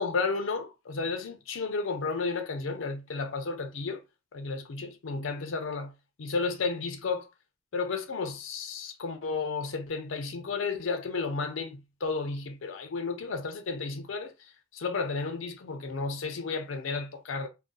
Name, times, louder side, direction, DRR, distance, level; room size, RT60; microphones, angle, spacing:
voice 1, 0.0-4.0 4.3-5.9 6.2-7.3 7.7-14.3 14.7-17.5, left 4 dB, 90° left, 0.5 m, -32 dB
2.6 x 2.0 x 3.7 m
head